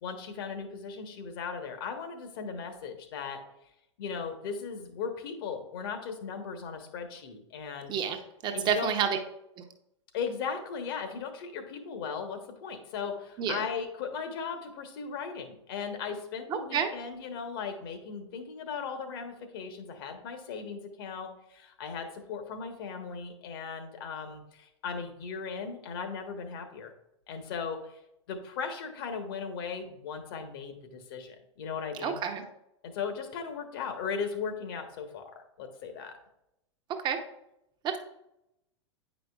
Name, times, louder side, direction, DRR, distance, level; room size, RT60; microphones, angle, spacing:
voice 1, 0.0-3.4 4.0-7.9 8.5-8.9 10.1-26.9 27.3-28.0 28.3-32.2 32.8-36.2, left 6 dB, 50° left, 7 dB, 1.1 m, -37 dB
voice 2, 8.4-9.2 13.4-13.6 16.5-16.9 32.0-32.4 37.0-37.2 37.8-38.0, right 8 dB, 30° right, 6 dB, 0.9 m, -29 dB
9.3 x 5.1 x 2.4 m, 0.82 s
figure-of-eight pair, 95°, 15 cm